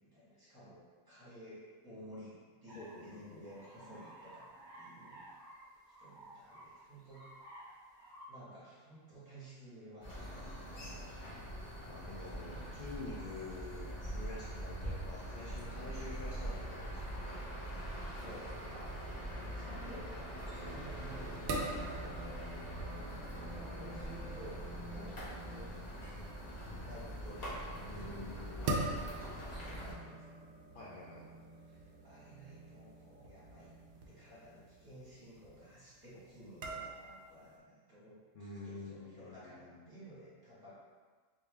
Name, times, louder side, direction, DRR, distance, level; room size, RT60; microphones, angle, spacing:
voice 1, 0.0-7.3 8.3-10.5 18.1-22.6 23.4-25.7 26.6-28.7 29.1-30.5 30.9-31.4 31.6-33.8 34.0-40.7, right 1 dB, 15° right, -11 dB, 1.2 m, -54 dB
voice 2, 2.7-3.5 10.1-11.3 11.9-17.3 27.9-29.1 30.7-31.3 38.3-39.9, left 2 dB, 80° left, -6 dB, 0.4 m, -48 dB
sound 1, 2.7-8.3, right 1 dB, 55° left, 1.8 m, -54 dB
sound 2, 10.0-29.9, right 1 dB, 40° left, 0.7 m, -43 dB
sound 3, 20.8-37.6, right 2 dB, 65° right, 0.5 m, -45 dB
3.5 x 2.6 x 3.2 m, 1.5 s
omnidirectional pair, 1.5 m